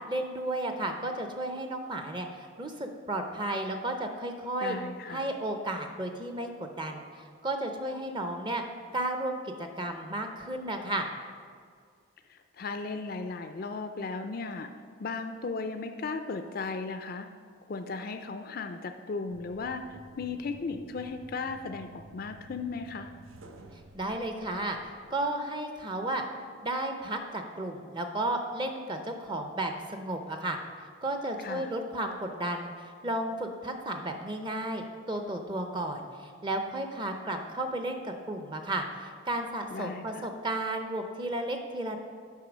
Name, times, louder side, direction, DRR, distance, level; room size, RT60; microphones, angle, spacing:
voice 1, 0.1-4.8 5.1-6.5 6.7-8.6 8.9-11.1 23.9-24.8 25.1-26.2 26.6-30.6 31.0-42.0, right 1 dB, 20° right, 5 dB, 0.6 m, -33 dB
voice 2, 4.6-5.3 12.3-14.7 15.0-17.3 17.7-23.1 31.4-31.7 39.7-40.3, left 4 dB, 45° left, 7 dB, 0.4 m, -36 dB
sound 1, 19.3-25.1, right 2 dB, 90° right, 0.8 m, -52 dB
8.4 x 5.4 x 6.1 m, 2.1 s
head